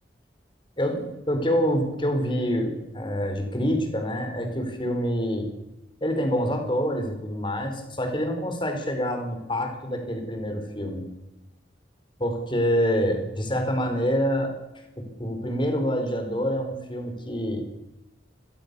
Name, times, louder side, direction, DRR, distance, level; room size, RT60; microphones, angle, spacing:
voice 1, 0.8-5.5 6.0-11.1 12.2-14.5 15.0-17.6, equal, 25° left, 5 dB, 4.8 m, -26 dB
26.5 x 21.5 x 7.1 m, 1.0 s
head